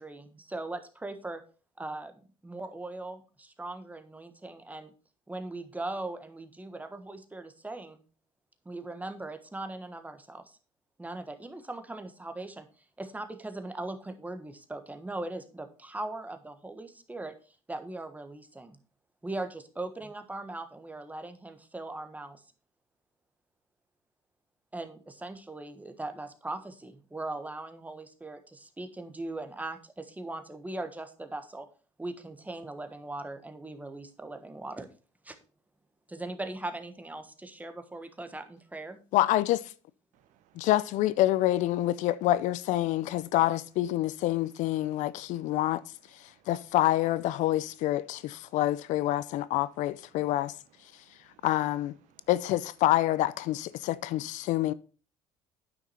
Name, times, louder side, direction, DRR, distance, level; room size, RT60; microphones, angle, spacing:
voice 1, 0.0-1.4 1.8-4.9 5.3-8.0 8.6-10.6 11.0-12.7 13.0-17.3 17.7-18.8 19.2-22.4 24.7-31.7 32.0-34.9 35.2-35.4 36.1-39.0, right 2 dB, 10° right, 1.4 m, -39 dB
voice 2, 39.1-39.6 40.6-45.8 46.5-50.5 51.4-51.9 52.3-54.7, left 15 dB, 70° left, 0.5 m, -27 dB
voice 3, 40.1-40.7 44.8-44.9 45.3-45.6 46.3-46.5 48.4-48.6 50.9-51.5 52.1-52.3, right 10 dB, 75° right, 1.0 m, -66 dB
9.4 x 5.9 x 4.3 m
supercardioid pair, 80°, 13 cm